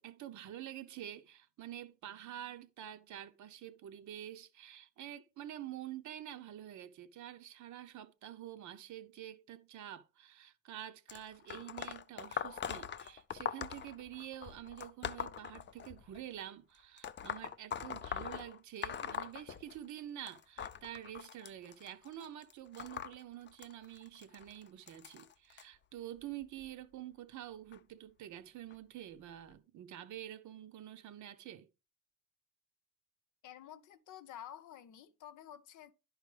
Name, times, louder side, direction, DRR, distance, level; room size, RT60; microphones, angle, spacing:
voice 1, 0.0-31.7, right 11 dB, 75° right, 0.8 m, -48 dB
sound 1, 11.1-16.2 17.0-20.0 20.3-25.6 26.4-26.7 27.7-27.8 28.7-28.8 29.5-29.6, left 8 dB, 40° left, 0.5 m, -42 dB
voice 2, 33.4-35.9, left 10 dB, 80° left, 0.7 m, -51 dB
10.5 x 4.8 x 3.3 m
cardioid pair, 90°, 30 cm